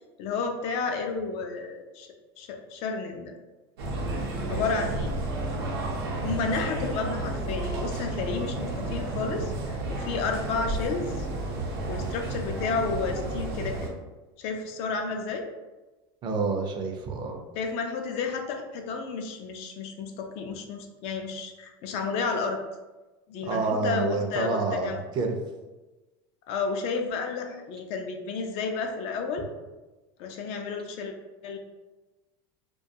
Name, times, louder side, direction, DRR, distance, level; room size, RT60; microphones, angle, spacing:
voice 1, 0.2-2.1 2.4-3.3 4.5-5.1 6.2-11.3 11.9-13.9 14.4-15.5 17.6-22.6 23.3-25.0 26.5-29.5 30.2-31.1 31.4-31.6, left 4 dB, 55° left, 4 dB, 0.4 m, -31 dB
sound 1, 3.8-13.9, right 2 dB, 90° right, 0.7 m, -32 dB
voice 2, 16.2-17.4 23.4-25.4, right 4 dB, 35° right, 3 dB, 0.4 m, -28 dB
2.2 x 2.2 x 2.7 m, 1.1 s
supercardioid pair, 120°, 13 cm